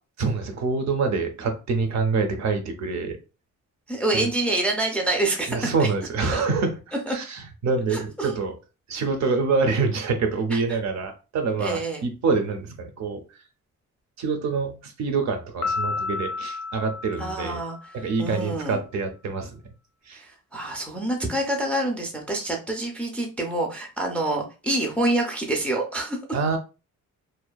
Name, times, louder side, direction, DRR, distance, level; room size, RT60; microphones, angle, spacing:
voice 1, 0.2-3.2 4.1-4.3 5.5-8.6 8.9-13.2 14.2-17.6 17.9-19.6 20.1-20.2 26.3-26.6, right 4 dB, 65° right, 0.5 m, -26 dB
voice 2, 3.9-5.9 6.3-6.4 7.1-7.2 7.9-8.3 10.5-10.6 11.6-12.1 17.2-17.8 18.2-18.8 20.1-26.2, right 2 dB, 5° left, 0.3 m, -27 dB
Piano, 15.6-18.2, left 4 dB, 80° left, 0.6 m, -31 dB
2.6 x 2.2 x 2.2 m
wide cardioid pair, 160°, 30 cm